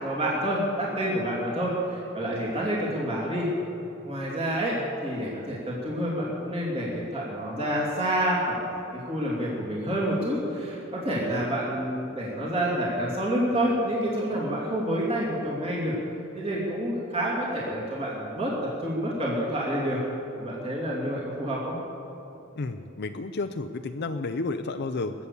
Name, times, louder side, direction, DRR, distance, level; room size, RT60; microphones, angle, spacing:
voice 1, 0.0-3.5 4.0-8.7 9.0-15.9 16.3-20.0 20.4-21.7, equal, 30° right, -5 dB, 3.0 m, -28 dB
voice 2, 22.6-25.1, left 3 dB, 55° left, 7 dB, 0.6 m, -31 dB
22.0 x 8.4 x 7.2 m, 2.9 s
head